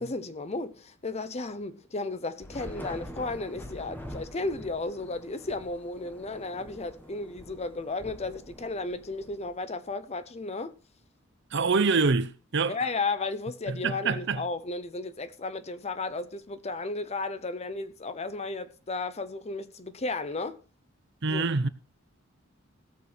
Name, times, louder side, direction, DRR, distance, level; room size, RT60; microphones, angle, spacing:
voice 1, 0.0-10.7 12.7-20.6 21.3-21.5, left 3 dB, 30° left, 0.8 m, -34 dB
Thunder / Rain, 2.4-9.9, equal, 10° left, 1.5 m, -45 dB
voice 2, 11.5-12.7 13.7-14.4 21.2-21.7, right 4 dB, 60° right, 0.8 m, -25 dB
17.0 x 6.9 x 4.3 m
head